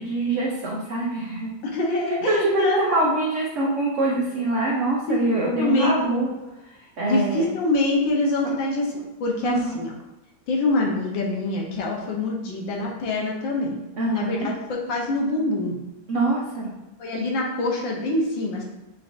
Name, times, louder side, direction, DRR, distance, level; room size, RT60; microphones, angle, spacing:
voice 1, 0.0-1.5 2.3-6.3 7.0-7.4 9.4-9.8 14.0-14.5 16.1-16.7, right 2 dB, 80° right, -3 dB, 0.6 m, -24 dB
voice 2, 1.7-3.1 5.1-5.2 5.6-5.9 7.0-9.9 10.5-13.8 14.1-15.8 17.0-18.6, left 2 dB, 75° left, -1 dB, 1.6 m, -25 dB
6.2 x 3.3 x 2.5 m, 1.0 s
omnidirectional pair, 2.2 m